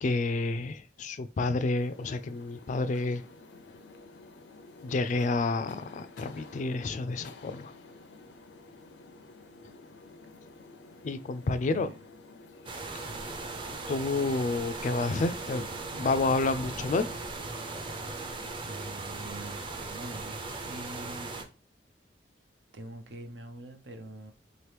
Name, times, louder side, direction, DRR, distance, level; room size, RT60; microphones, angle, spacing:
voice 1, 0.0-3.2 4.8-7.7 11.0-11.9 13.9-15.7 15.9-17.1, left 3 dB, 45° left, 0.3 m, -29 dB
sound 1, 1.8-18.6, left 3 dB, 90° left, 0.6 m, -51 dB
sound 2, 12.7-21.4, right 3 dB, 30° right, 0.6 m, -38 dB
voice 2, 18.6-21.3 22.7-24.3, right 1 dB, 85° right, 0.8 m, -44 dB
4.0 x 2.9 x 3.3 m
head